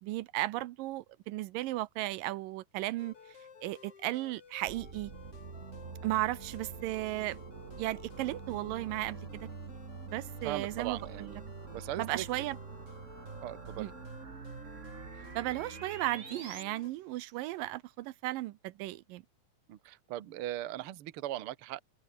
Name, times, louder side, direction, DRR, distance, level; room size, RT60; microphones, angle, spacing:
voice 1, 0.0-3.1 3.6-5.1 6.0-7.4 7.7-9.8 10.0-11.0 12.0-12.6 13.8-13.9 15.4-19.2, right 17 dB, 80° right, 2.4 m, -35 dB
sound 1, 3.0-16.9, left 6 dB, 45° left, 3.4 m, -54 dB
sound 2, 4.7-16.6, right 5 dB, 45° right, 1.0 m, -46 dB
voice 2, 10.4-11.4 11.7-12.2 13.4-13.9 19.7-21.8, right 13 dB, 60° right, 1.4 m, -39 dB
open air
omnidirectional pair, 4.0 m